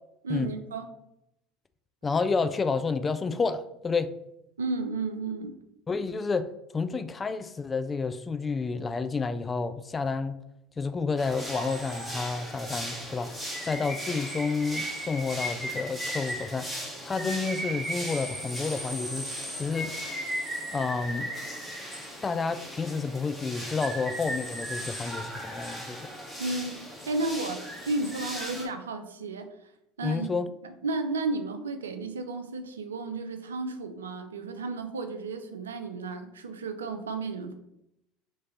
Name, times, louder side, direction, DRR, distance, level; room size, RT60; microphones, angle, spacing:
voice 1, 0.2-0.9 4.6-5.5 26.4-29.5 30.0-30.3 30.6-37.5, right 3 dB, 85° right, 0.4 m, -33 dB
voice 2, 2.0-4.1 5.9-6.5 6.7-10.4 10.8-13.4 13.6-16.7 17.0-19.3 19.6-19.9 20.7-21.3 22.2-26.1 30.0-30.5, left 4 dB, 25° left, 0.3 m, -30 dB
sound 1, 11.2-28.7, equal, ahead, 1.2 m, -36 dB
3.1 x 2.8 x 4.1 m
hypercardioid pair, 70°, 0 cm